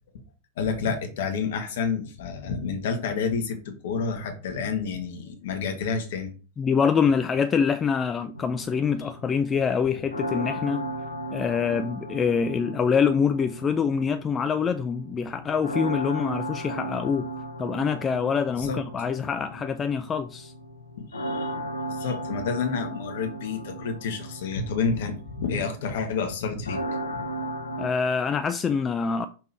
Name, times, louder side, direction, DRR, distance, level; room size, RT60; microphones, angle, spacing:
voice 1, 0.6-6.3 9.0-9.1 18.6-18.8 21.1-21.5 21.9-26.8 27.4-27.5, left 5 dB, 55° left, 1.4 m, -29 dB
voice 2, 6.6-10.9 11.3-17.3 17.6-20.5 27.8-29.3, left 6 dB, 20° left, 0.4 m, -25 dB
sound 1, 8.3-27.9, right 1 dB, 80° left, 0.7 m, -36 dB
5.9 x 3.6 x 4.4 m
figure-of-eight pair, 90°, 0 cm